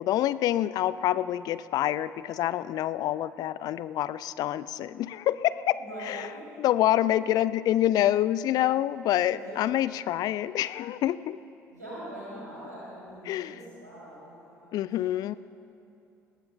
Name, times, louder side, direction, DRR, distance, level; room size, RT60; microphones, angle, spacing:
voice 1, 0.0-5.8 6.1-6.3 6.6-11.4 13.3-13.6 14.7-15.4, left 12 dB, 45° left, 17 dB, 0.3 m, -27 dB
voice 2, 5.7-6.5 9.3-9.5 11.7-14.8, equal, 90° right, -8 dB, 2.9 m, -43 dB
20.5 x 17.0 x 2.2 m, 2.7 s
figure-of-eight pair, 55°, 9 cm